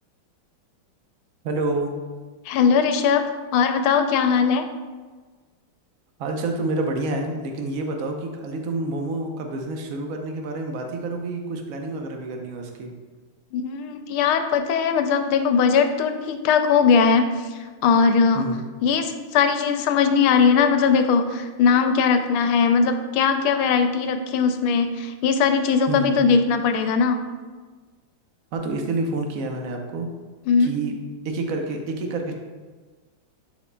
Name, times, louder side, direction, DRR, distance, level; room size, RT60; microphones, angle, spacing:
voice 1, 1.4-1.9 6.2-12.9 18.3-18.6 25.9-26.4 28.5-30.1 30.6-30.9 31.2-32.3, right 2 dB, 60° right, 3 dB, 0.9 m, -28 dB
voice 2, 2.5-3.2 3.5-4.7 13.5-17.3 17.8-18.5 18.8-27.2 30.5-30.7, left 6 dB, 80° left, 7 dB, 1.5 m, -20 dB
11.0 x 4.9 x 2.3 m, 1.4 s
omnidirectional pair, 2.3 m